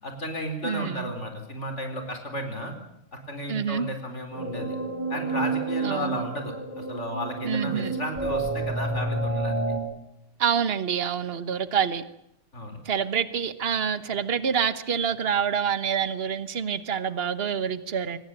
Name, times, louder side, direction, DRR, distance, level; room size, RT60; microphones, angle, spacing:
voice 1, 0.0-2.7 3.1-4.8 5.1-9.6 12.5-12.8, equal, 85° left, 5 dB, 4.6 m, -33 dB
voice 2, 0.6-1.1 3.5-3.9 5.8-6.1 7.4-8.0 10.4-12.0 12.9-18.2, right 7 dB, 60° right, 14 dB, 1.4 m, -27 dB
sound 1, 4.3-9.8, right 3 dB, 10° right, 7.1 m, -29 dB
24.0 x 19.5 x 9.0 m, 0.78 s
omnidirectional pair, 1.2 m